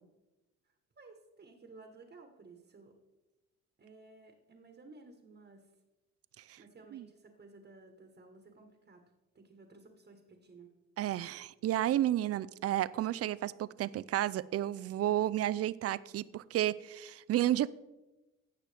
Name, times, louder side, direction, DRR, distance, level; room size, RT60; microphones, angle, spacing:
voice 1, 1.0-2.9 3.8-5.7 6.6-9.0 9.3-10.7, right 3 dB, 35° right, 4 dB, 1.3 m, -56 dB
voice 2, 11.0-17.7, right 13 dB, 55° right, 18 dB, 0.4 m, -32 dB
16.0 x 6.1 x 3.4 m, 1.1 s
cardioid pair, 90°, 30 cm